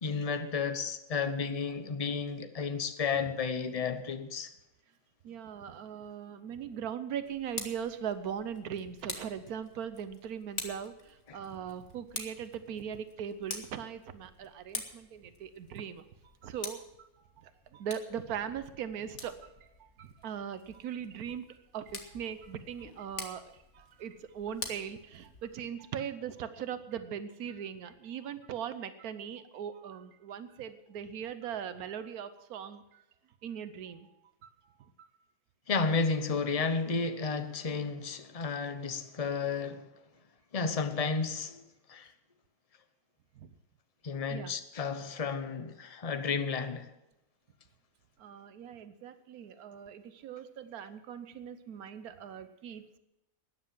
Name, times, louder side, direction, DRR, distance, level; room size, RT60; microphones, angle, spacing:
voice 1, 0.0-4.5 11.3-11.4 35.7-39.9 40.5-41.6 41.9-42.1 44.0-46.9, left 5 dB, 30° left, 0.8 m, -32 dB
voice 2, 5.2-16.0 16.4-17.1 17.4-33.0 33.4-34.2 34.4-34.5 35.0-35.1 43.4-43.5 44.3-44.5 48.2-53.0, right 8 dB, 85° right, 1.3 m, -40 dB
Tick, 7.2-25.7, left 4 dB, 55° left, 1.9 m, -47 dB
13.0 x 9.8 x 7.6 m
omnidirectional pair, 1.5 m